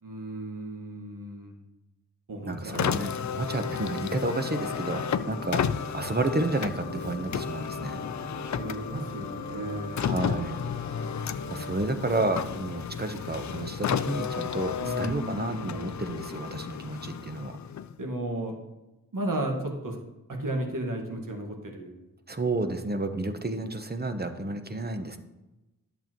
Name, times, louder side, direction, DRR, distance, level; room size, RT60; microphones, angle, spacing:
voice 1, 0.0-1.6 2.3-3.0 8.6-10.3 14.8-16.0 18.0-18.5 19.1-20.0 20.3-21.9, right 1 dB, 70° right, 2 dB, 1.7 m, -34 dB
voice 2, 2.4-5.6 5.9-8.0 10.0-10.6 11.5-17.6 22.3-25.2, right 2 dB, 30° right, 7 dB, 0.9 m, -31 dB
Car, 2.7-18.1, left 7 dB, 55° left, 0.4 m, -33 dB
sound 1, 4.5-11.8, left 2 dB, 30° left, 1.9 m, -41 dB
10.5 x 7.0 x 3.0 m, 1.0 s
cardioid pair, 40°, 34 cm